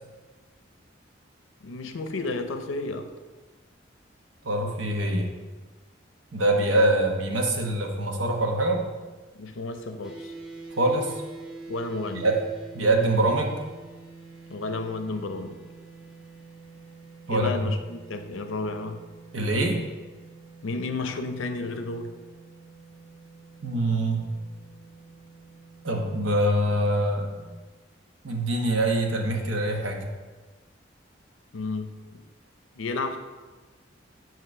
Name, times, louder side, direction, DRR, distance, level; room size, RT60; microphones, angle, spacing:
voice 1, 1.6-3.1 9.4-10.3 11.7-12.3 14.5-15.6 17.3-19.0 20.6-22.1 31.5-31.9 32.8-33.2, left 3 dB, 85° left, 8 dB, 0.6 m, -32 dB
voice 2, 4.4-5.3 6.3-8.8 10.7-11.2 12.1-12.4 12.7-13.6 17.3-17.6 19.3-19.8 23.6-24.2 25.8-27.3 28.2-30.1, right 1 dB, 80° right, 1 dB, 1.1 m, -24 dB
sound 1, 10.0-27.5, right 3 dB, 5° right, 0.8 m, -46 dB
7.4 x 3.1 x 5.9 m, 1.3 s
head